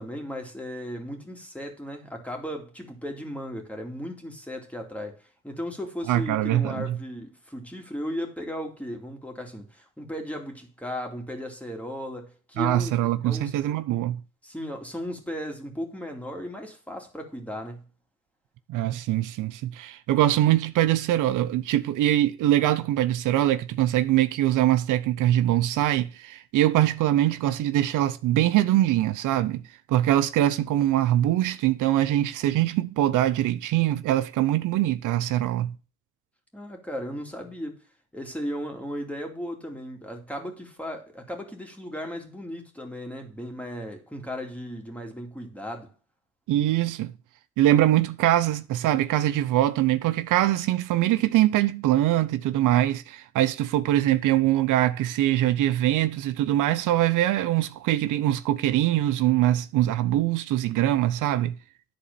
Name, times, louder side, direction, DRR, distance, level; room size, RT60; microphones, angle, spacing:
voice 1, 0.0-13.5 14.4-17.8 36.5-37.8 38.1-45.9, equal, 5° left, 2.6 m, -36 dB
voice 2, 6.1-7.0 12.6-14.2 18.7-29.6 29.9-35.7 46.5-47.1 47.6-61.5, right 13 dB, 85° right, 0.7 m, -23 dB
10.5 x 4.3 x 6.8 m
cardioid pair, 95°, 30 cm